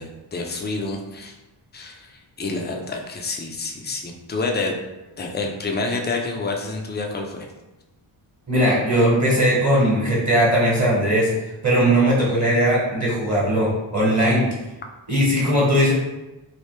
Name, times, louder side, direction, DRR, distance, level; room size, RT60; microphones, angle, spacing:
voice 1, 0.0-1.3 1.7-2.1 2.4-4.8 5.2-7.5, left 3 dB, 20° left, 2 dB, 0.4 m, -28 dB
voice 2, 8.5-11.3 11.6-14.5 15.1-15.9, equal, 35° right, -5 dB, 1.1 m, -19 dB
3.2 x 2.0 x 3.1 m, 1.0 s
cardioid pair, 70°, 49 cm